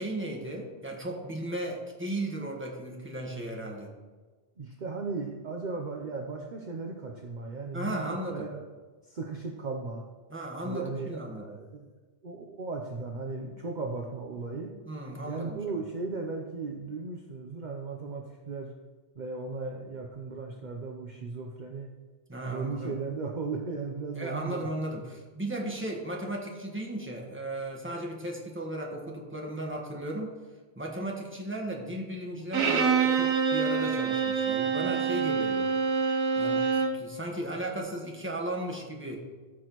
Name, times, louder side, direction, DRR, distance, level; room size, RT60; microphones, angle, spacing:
voice 1, 0.0-3.9 7.7-8.5 10.3-11.6 14.9-15.6 22.3-23.0 24.2-30.3 30.7-35.7 36.4-39.2, right 1 dB, 10° right, 0 dB, 1.4 m, -35 dB
voice 2, 4.6-8.6 9.0-10.1 10.6-11.9 12.2-14.8 15.2-18.7 19.1-21.9 22.4-24.7, right 4 dB, 50° right, 1 dB, 0.8 m, -36 dB
Bowed string instrument, 32.5-37.0, right 5 dB, 90° right, 1.2 m, -26 dB
14.0 x 6.2 x 3.0 m, 1.3 s
omnidirectional pair, 1.1 m